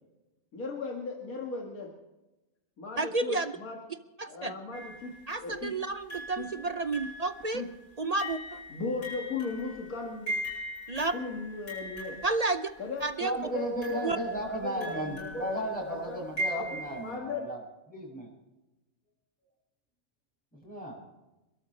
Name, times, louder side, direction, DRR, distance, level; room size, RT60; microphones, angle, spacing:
voice 1, 0.5-1.9 2.8-3.8 4.3-5.7 6.3-6.5 7.5-7.7 8.7-10.4 11.1-12.2 12.8-13.1 13.4-16.2 16.6-16.7 17.0-17.5, left 4 dB, 80° left, -1 dB, 2.4 m, -37 dB
voice 2, 3.0-3.4 4.2-4.5 5.3-7.6 8.0-8.6 10.9-11.1 12.2-12.7 13.0-13.3 14.0-14.2, right 3 dB, 45° right, 10 dB, 0.5 m, -30 dB
sound 1, 4.7-5.3 6.1-13.0 13.8-17.1, equal, 60° left, 8.0 m, -40 dB
voice 3, 13.2-17.6 17.9-18.3 20.5-21.0, right 1 dB, 5° left, -3 dB, 6.4 m, -34 dB
28.0 x 13.0 x 3.3 m, 1.0 s
omnidirectional pair, 1.5 m